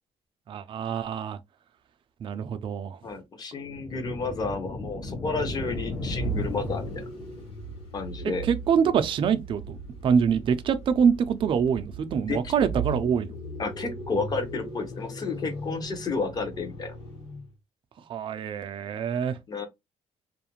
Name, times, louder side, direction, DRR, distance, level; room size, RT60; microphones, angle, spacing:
voice 1, 0.5-1.4 2.2-3.0 8.4-9.8 10.0-13.4 18.1-19.4, right 7 dB, 45° right, 0.4 m, -25 dB
voice 2, 3.0-6.9 7.9-8.4 12.3-12.5 13.6-16.9 19.5-19.7, left 4 dB, 35° left, 0.7 m, -31 dB
sound 1, 3.6-7.5, left 2 dB, 80° left, 0.9 m, -35 dB
sound 2, 5.4-17.5, right 2 dB, 50° left, 1.2 m, -38 dB
2.4 x 2.1 x 2.9 m
cardioid pair, 140°, 12 cm